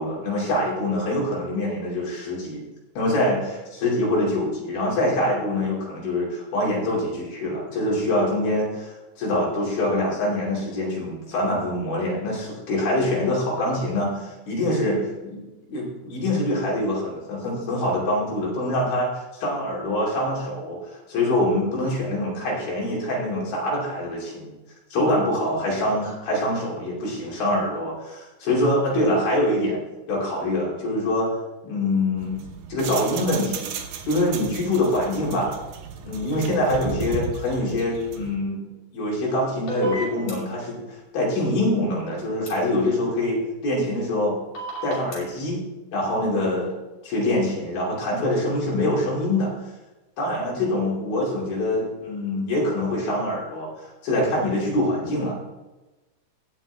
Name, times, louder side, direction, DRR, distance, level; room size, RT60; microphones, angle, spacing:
voice 1, 0.0-2.6 3.0-15.4 15.7-24.5 24.9-29.8 30.1-31.3 31.6-32.4 32.7-33.7 34.0-35.5 36.0-38.7 38.9-44.4 44.8-45.6 45.9-46.8 47.0-49.5 50.2-55.4, left 1 dB, 75° left, -4 dB, 4.5 m, -24 dB
sound 1, 32.2-38.3, right 6 dB, 70° right, 2.0 m, -35 dB
sound 2, 39.7-40.3 42.5-42.6 44.6-45.2, right 1 dB, 45° left, 3.9 m, -28 dB
17.0 x 6.5 x 3.4 m, 1.1 s
omnidirectional pair, 4.2 m